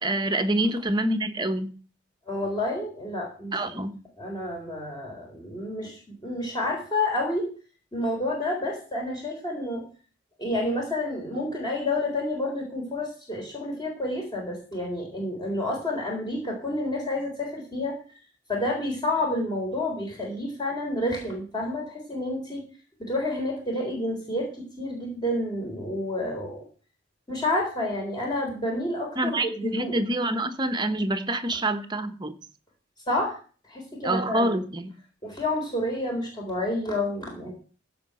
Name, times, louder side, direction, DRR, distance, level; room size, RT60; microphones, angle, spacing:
voice 1, 0.0-1.7 3.5-4.0 29.2-32.4 34.0-34.9, right 1 dB, 25° right, 1.1 m, -26 dB
voice 2, 2.3-3.6 4.2-7.5 7.9-9.8 10.4-18.0 18.5-22.6 23.0-26.6 27.3-30.0 33.1-33.4 33.7-34.6 35.2-37.5, left 1 dB, 20° left, 3.9 m, -29 dB
15.5 x 5.2 x 7.7 m
head